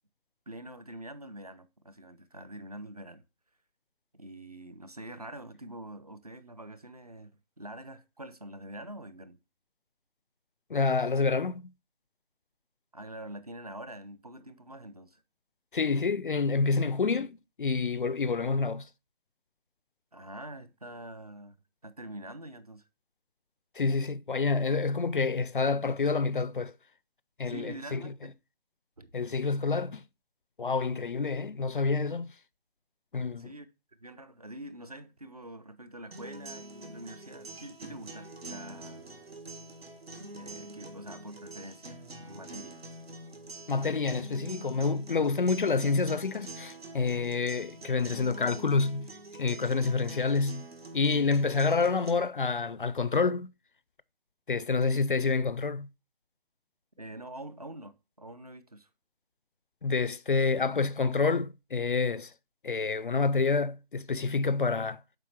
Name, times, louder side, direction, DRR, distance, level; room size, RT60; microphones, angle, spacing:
voice 1, 0.5-3.2 4.1-9.4 12.9-15.2 20.1-21.6 21.8-22.9 27.4-28.3 29.0-29.1 33.4-33.7 34.0-39.2 40.3-42.8 57.0-58.9, right 1 dB, 40° right, 0.6 m, -45 dB
voice 2, 10.7-11.7 15.7-18.9 23.8-26.7 27.4-28.1 29.1-30.0 30.6-32.3 33.1-33.5 43.7-49.1 49.4-50.7 50.9-53.5 54.5-55.9 59.8-62.3 62.6-65.0, left 4 dB, 60° left, 0.4 m, -28 dB
sound 1, 36.1-52.1, right 2 dB, 80° right, 1.6 m, -45 dB
7.5 x 5.1 x 3.1 m
figure-of-eight pair, 175°, 30 cm